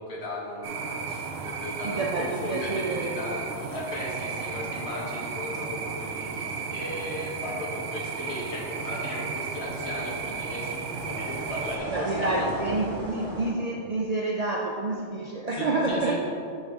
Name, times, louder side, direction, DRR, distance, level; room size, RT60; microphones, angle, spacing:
voice 1, 0.0-12.5 15.5-16.2, left 1 dB, 60° left, -3 dB, 1.4 m, -36 dB
sound 1, 0.6-11.8, right 5 dB, 65° right, 0.7 m, -34 dB
voice 2, 1.8-3.2 11.9-16.2, right 2 dB, 85° right, -1 dB, 0.3 m, -28 dB
sound 2, 3.6-4.4 4.6-13.5, equal, 45° right, 1.2 m, -39 dB
9.5 x 3.3 x 3.4 m, 2.6 s
omnidirectional pair, 1.2 m